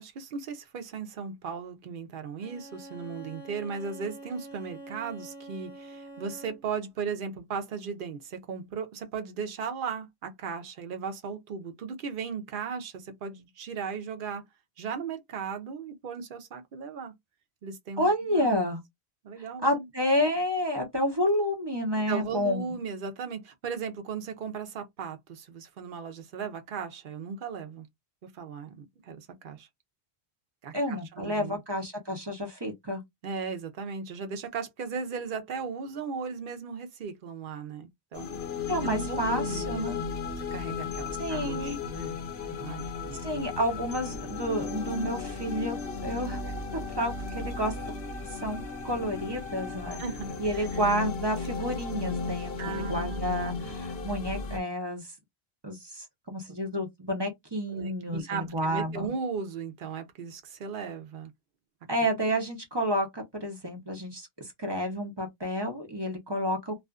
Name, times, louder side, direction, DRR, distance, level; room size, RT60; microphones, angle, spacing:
voice 1, 0.0-14.4 14.8-17.1 17.6-18.5 19.2-19.9 22.1-27.9 28.3-29.7 30.6-31.6 33.2-42.1 42.4-43.4 50.0-50.7 52.6-53.7 57.7-61.3, right 5 dB, 60° right, 0.7 m, -37 dB
Bowed string instrument, 2.4-6.8, right 2 dB, ahead, 1.3 m, -46 dB
voice 2, 18.0-18.8 19.4-22.8 30.7-33.0 38.7-40.0 41.2-41.8 43.2-46.4 46.7-48.0 48.3-50.0 50.4-55.1 55.6-59.1 61.9-66.8, equal, 25° right, 0.7 m, -30 dB
sound 1, 38.1-54.6, left 4 dB, 70° left, 0.9 m, -35 dB
2.4 x 2.4 x 2.3 m
omnidirectional pair, 1.1 m